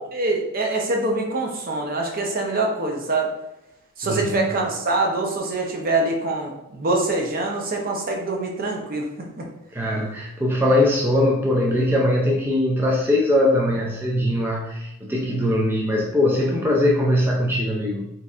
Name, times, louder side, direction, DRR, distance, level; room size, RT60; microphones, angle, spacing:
voice 1, 0.1-3.3 4.0-9.1 9.4-9.5, right 2 dB, 45° right, 0 dB, 0.7 m, -24 dB
voice 2, 4.0-4.5 9.7-18.0, left 1 dB, 10° right, -3 dB, 0.5 m, -21 dB
4.1 x 4.0 x 2.4 m, 0.88 s
head